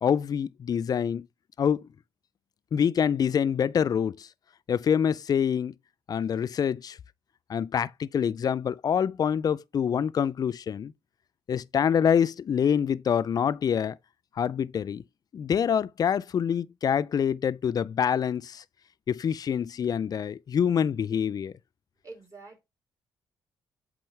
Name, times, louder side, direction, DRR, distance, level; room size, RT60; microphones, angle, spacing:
voice 1, 0.0-1.3 1.6-1.9 2.7-4.3 4.7-5.7 6.1-7.0 7.5-10.9 11.5-14.0 14.4-15.0 15.3-18.6 19.1-21.5, left 8 dB, 50° left, 0.4 m, -26 dB
voice 2, 22.0-22.6, right 3 dB, 35° right, 3.7 m, -46 dB
7.7 x 3.8 x 3.3 m
supercardioid pair, 60°, 9 cm